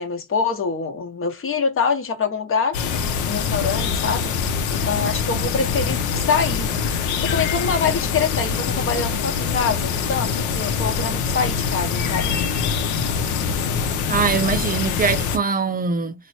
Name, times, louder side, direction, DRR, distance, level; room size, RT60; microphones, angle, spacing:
voice 1, 0.0-2.8 3.3-4.4 4.7-6.7 6.9-12.3, left 5 dB, 45° left, 1.0 m, -25 dB
sound 1, 2.7-15.4, left 6 dB, 90° left, 0.6 m, -24 dB
voice 2, 14.1-16.1, right 5 dB, 30° right, 0.5 m, -22 dB
3.0 x 2.1 x 4.1 m
supercardioid pair, 75°, 29 cm